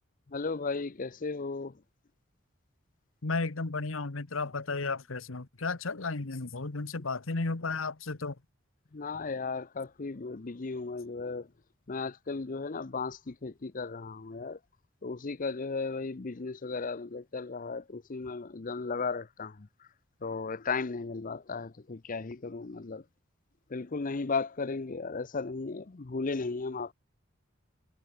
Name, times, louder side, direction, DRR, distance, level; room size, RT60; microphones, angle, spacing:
voice 1, 0.3-1.7 8.9-11.5 11.9-14.6 15.0-19.9 20.2-23.0 23.7-26.9, left 4 dB, 40° left, 0.7 m, -35 dB
voice 2, 3.2-8.4, left 3 dB, 85° left, 1.3 m, -33 dB
head